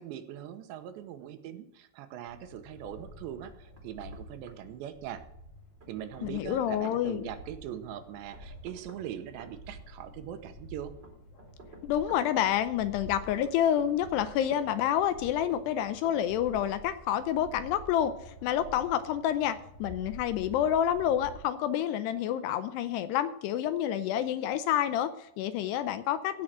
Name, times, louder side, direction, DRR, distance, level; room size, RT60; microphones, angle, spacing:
voice 1, 0.0-5.2 5.9-10.9, right 10 dB, 80° right, 10 dB, 3.1 m, -41 dB
sound 1, 2.2-21.3, equal, 50° left, 7.1 m, -49 dB
Knock, 3.4-4.2 4.5-4.6 5.8-7.0 8.3-9.6 11.0-12.3 13.5-14.7 15.5-16.3 16.5-16.7, right 3 dB, 30° right, 2.3 m, -50 dB
voice 2, 6.2-7.2 11.8-26.4, left 10 dB, 80° left, 12 dB, 2.6 m, -28 dB
16.0 x 6.4 x 7.6 m, 0.77 s
omnidirectional pair, 5.2 m